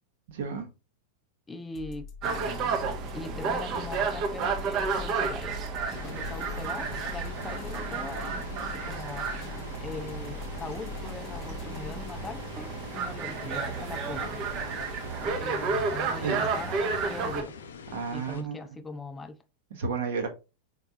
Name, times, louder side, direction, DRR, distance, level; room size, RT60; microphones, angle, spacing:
voice 1, 0.3-0.7 16.2-16.4 17.9-18.6 19.7-20.3, right 5 dB, 55° right, 1.1 m, -31 dB
voice 2, 1.5-2.1 3.1-5.6 5.9-9.5 9.8-14.5 15.2-17.6 18.1-19.4, left 3 dB, 15° left, 0.4 m, -41 dB
sound 1, 1.7-12.4, left 5 dB, 35° left, 1.0 m, -43 dB
sound 2, 2.2-17.4, right 5 dB, 35° right, 0.8 m, -32 dB
sound 3, 5.9-18.4, left 5 dB, 65° left, 0.6 m, -45 dB
4.4 x 3.9 x 2.7 m
figure-of-eight pair, 90°, 0 cm